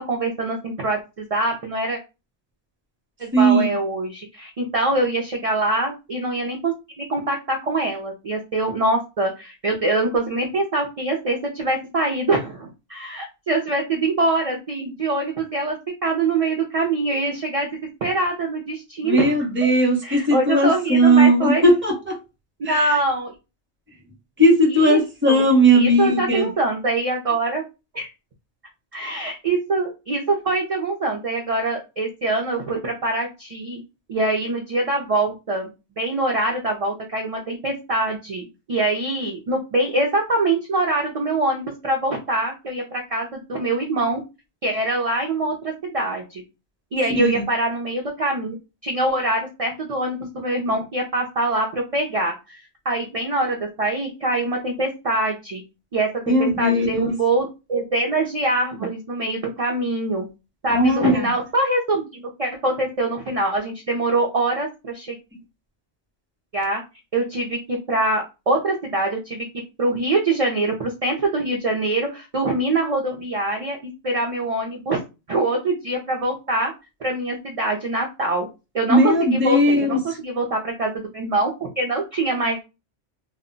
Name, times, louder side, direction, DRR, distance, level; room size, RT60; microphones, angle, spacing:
voice 1, 0.0-2.0 3.2-15.8 16.0-17.7 18.0-19.3 20.0-21.6 22.6-23.3 24.7-25.4 25.7-27.6 27.9-28.1 28.9-33.8 34.1-35.7 36.0-44.2 44.6-46.4 46.9-48.6 48.8-52.6 52.9-55.6 55.9-60.3 60.6-65.2 66.5-66.8 67.1-69.5 69.8-73.8 74.0-75.0 75.3-76.7 77.0-78.5 78.7-82.6, right 2 dB, 50° right, 0.4 m, -24 dB
voice 2, 3.3-3.7 19.0-22.2 22.6-23.0 24.4-26.5 47.2-47.4 56.3-57.2 60.7-61.3 78.9-80.2, right 1 dB, 10° right, 0.6 m, -18 dB
2.1 x 2.1 x 3.7 m
omnidirectional pair, 1.2 m